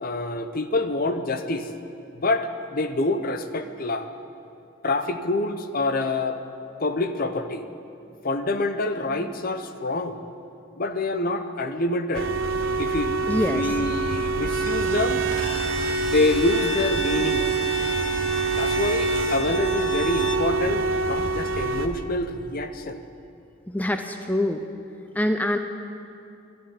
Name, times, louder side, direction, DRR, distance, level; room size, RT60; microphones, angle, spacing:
voice 1, 0.0-1.7 2.1-4.1 4.8-6.4 6.8-7.6 8.2-10.2 10.8-12.3 12.8-15.2 16.1-17.5 18.6-23.0, left 2 dB, 45° left, 9 dB, 0.8 m, -26 dB
sound 1, 12.1-21.9, right 4 dB, 70° right, 0.9 m, -25 dB
voice 2, 13.3-13.8 23.7-24.6 25.1-25.6, left 1 dB, 10° left, 6 dB, 0.5 m, -25 dB
Bowed string instrument, 15.3-20.5, left 2 dB, 70° left, 1.7 m, -34 dB
12.5 x 12.0 x 9.8 m, 2.7 s
head